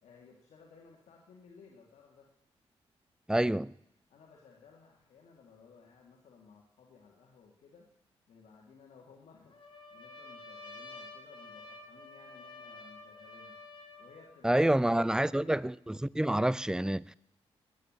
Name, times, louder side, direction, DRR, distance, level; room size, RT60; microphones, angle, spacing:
voice 1, 0.0-2.3 4.1-7.9 8.3-13.6 14.0-15.7, left 5 dB, 75° left, 2.1 m, -58 dB
voice 2, 3.3-3.7 14.4-15.7 16.0-17.1, right 1 dB, 5° right, 0.4 m, -27 dB
Trumpet, 9.5-14.4, left 3 dB, 50° left, 2.9 m, -50 dB
10.0 x 9.4 x 8.8 m
supercardioid pair, 50°, 11 cm